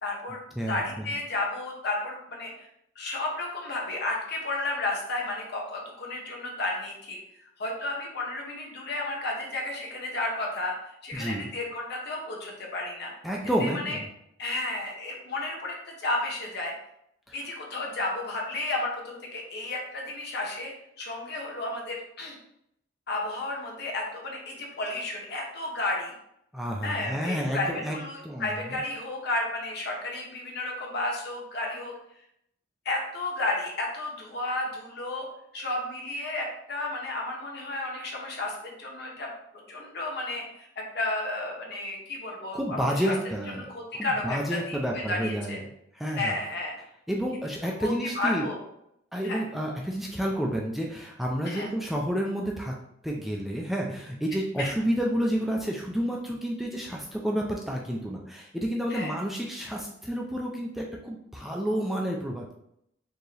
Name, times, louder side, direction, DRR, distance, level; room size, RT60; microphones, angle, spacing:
voice 1, 0.0-2.5 3.0-7.2 7.6-10.7 11.0-13.1 13.6-14.0 14.4-16.7 17.3-22.4 23.1-26.1 26.8-31.9 32.8-35.2 35.5-39.3 39.7-43.1 43.7-45.6 46.1-46.7 47.8-48.6 49.2-49.4 51.4-51.7 54.6-54.7 58.9-59.1, left 2 dB, 60° left, -1 dB, 1.1 m, -32 dB
voice 2, 0.6-1.1 11.1-11.4 13.2-14.1 17.3-17.4 26.5-28.8 42.5-45.6 45.9-46.3 47.1-48.5 49.1-52.7 53.0-62.5, equal, ahead, -1 dB, 0.4 m, -30 dB
4.4 x 2.9 x 3.2 m, 0.77 s
head